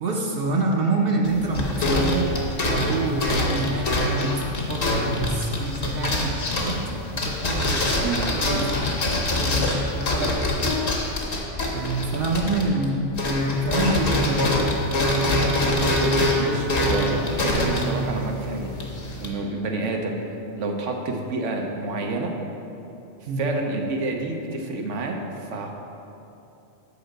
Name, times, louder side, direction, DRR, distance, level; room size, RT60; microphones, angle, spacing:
voice 1, 0.0-2.3 2.8-6.8 7.1-8.8 9.3-10.4 11.7-14.5 15.2-15.4 23.3-23.4, right 2 dB, 55° right, 0 dB, 0.9 m, -27 dB
sound 1, 1.2-12.9 13.1-19.3, left 1 dB, 55° left, 1.2 m, -24 dB
voice 2, 16.0-18.9 19.2-20.2 20.6-22.3 23.4-25.2 25.5-25.8, right 3 dB, 90° right, 2 dB, 1.2 m, -28 dB
6.9 x 4.8 x 6.5 m, 2.9 s
omnidirectional pair, 1.2 m